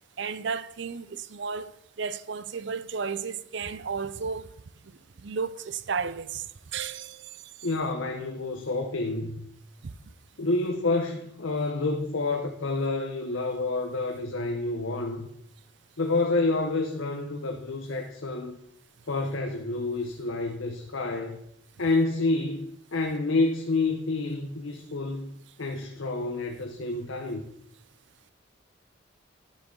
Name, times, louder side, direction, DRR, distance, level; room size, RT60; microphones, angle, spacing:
voice 1, 0.2-1.7 2.0-4.5 5.2-6.4 6.7-7.3, right 5 dB, 60° right, 0.5 m, -33 dB
voice 2, 7.6-9.5 10.4-15.3 16.0-18.6 19.1-21.4 21.8-25.3 25.6-27.4, left 3 dB, 70° left, 0.8 m, -28 dB
12.0 x 6.1 x 3.8 m
head